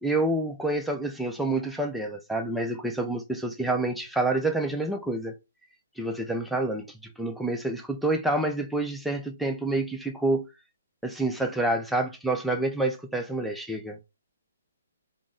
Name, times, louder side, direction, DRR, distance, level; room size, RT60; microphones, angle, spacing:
voice 1, 0.0-5.3 6.0-10.5 11.0-14.0, right 2 dB, ahead, 0.4 m, -28 dB
2.5 x 2.0 x 3.6 m
hypercardioid pair, 140°, 0 cm